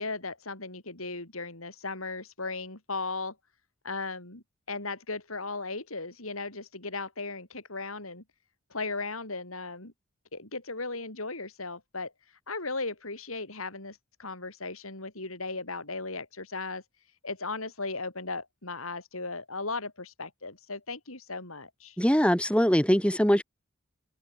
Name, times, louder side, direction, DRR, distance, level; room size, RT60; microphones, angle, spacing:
voice 1, 0.0-3.4 3.8-8.2 8.7-9.9 10.3-12.1 12.5-16.8 17.2-22.0, left 3 dB, 85° left, 6.6 m, -36 dB
voice 2, 22.0-23.4, equal, 5° left, 5.0 m, -22 dB
head